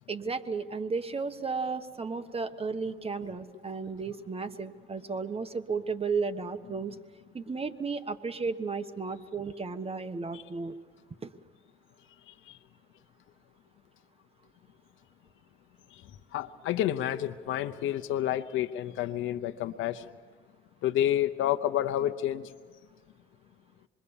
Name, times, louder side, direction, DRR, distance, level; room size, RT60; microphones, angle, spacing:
voice 1, 0.1-6.9 7.3-10.7 11.2-11.3, right 4 dB, 30° right, 10 dB, 1.2 m, -34 dB
voice 2, 12.3-12.6 15.9-16.0 16.3-20.1 20.8-22.5, left 12 dB, 85° left, 8 dB, 0.8 m, -29 dB
26.5 x 21.5 x 7.1 m, 1.5 s
cardioid pair, 90°, 20 cm